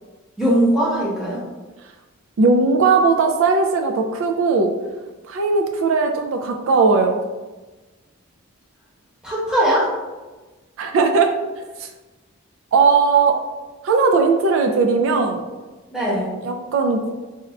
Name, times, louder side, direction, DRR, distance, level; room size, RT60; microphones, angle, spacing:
voice 1, 0.4-1.5 9.2-9.9 15.9-16.3, right 1 dB, 5° right, -7 dB, 0.8 m, -20 dB
voice 2, 2.4-4.7 5.3-7.2 10.8-11.3 11.8-11.9 12.7-13.4 13.8-15.4 16.4-17.1, right 4 dB, 65° right, 4 dB, 0.3 m, -18 dB
4.1 x 2.3 x 2.3 m, 1.2 s
head